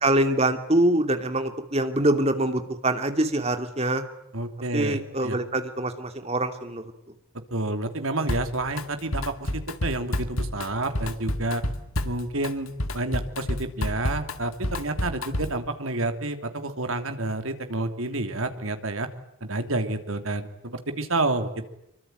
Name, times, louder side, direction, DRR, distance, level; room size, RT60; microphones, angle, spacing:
voice 1, 0.0-4.0 4.7-6.8, right 1 dB, 30° right, 7 dB, 2.6 m, -24 dB
voice 2, 4.3-5.4 7.3-11.6 12.0-19.1 19.4-21.6, right 2 dB, 75° right, 7 dB, 3.1 m, -29 dB
Drum kit, 8.3-8.8 9.1-15.7, left 1 dB, 80° left, 2.1 m, -30 dB
25.5 x 24.0 x 9.4 m, 0.81 s
head